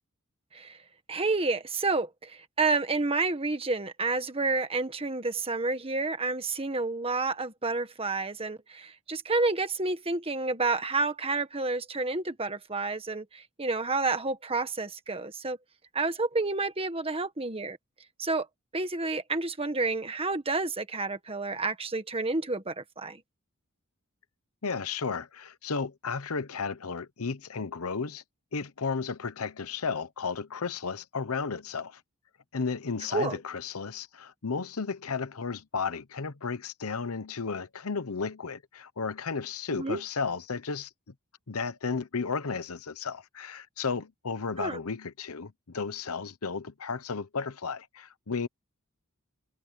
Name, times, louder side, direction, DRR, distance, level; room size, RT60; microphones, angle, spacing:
voice 1, 1.1-2.3 2.6-15.6 15.9-17.8 18.2-18.5 18.7-23.2 33.1-33.4 39.7-40.0 44.6-44.8, right 3 dB, 25° right, 1.7 m, -29 dB
voice 2, 24.6-28.2 28.5-32.0 32.5-40.9 41.5-48.5, left 5 dB, 85° left, 0.9 m, -33 dB
head